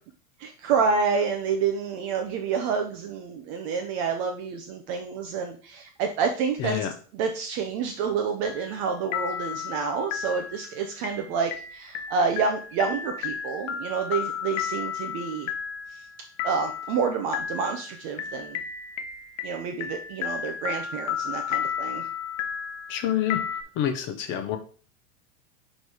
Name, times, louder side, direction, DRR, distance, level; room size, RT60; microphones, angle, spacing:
voice 1, 0.4-6.8 7.1-15.5 15.9-16.0 16.4-18.6 19.4-22.1, right 5 dB, 25° right, 4 dB, 0.4 m, -28 dB
voice 2, 6.6-6.9 22.9-23.4 23.8-24.6, left 10 dB, 25° left, 7 dB, 0.6 m, -27 dB
sound 1, 8.4-8.9 9.1-23.6, left 8 dB, 55° left, 0.8 m, -33 dB
4.9 x 4.3 x 4.6 m, 0.40 s
supercardioid pair, 150°, 44 cm